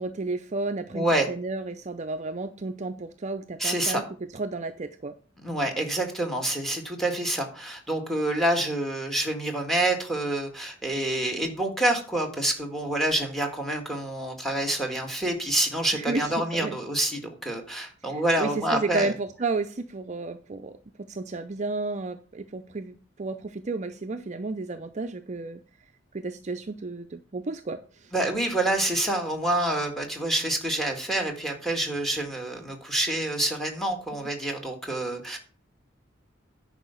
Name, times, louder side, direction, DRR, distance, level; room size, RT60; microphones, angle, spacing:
voice 1, 0.0-4.0 4.3-5.2 15.9-16.8 18.1-20.8 21.1-25.6 26.1-28.1, right 3 dB, 35° right, 8 dB, 0.5 m, -32 dB
voice 2, 0.9-1.3 3.6-4.0 5.4-19.1 28.1-35.4, right 1 dB, ahead, 4 dB, 1.8 m, -27 dB
10.0 x 4.9 x 6.9 m, 0.40 s
head